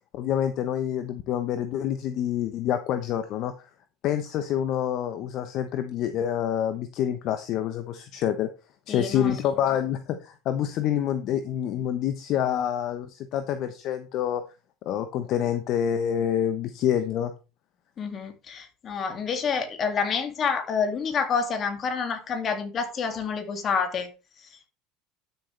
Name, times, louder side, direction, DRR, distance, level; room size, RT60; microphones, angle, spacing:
voice 1, 0.1-3.5 4.0-8.5 8.9-14.4 14.8-17.3, left 10 dB, 55° left, 1.0 m, -27 dB
voice 2, 8.9-9.4 18.0-24.1 24.4-24.5, left 6 dB, 40° left, 2.4 m, -28 dB
12.0 x 6.8 x 3.4 m
hypercardioid pair, 85°, 0 cm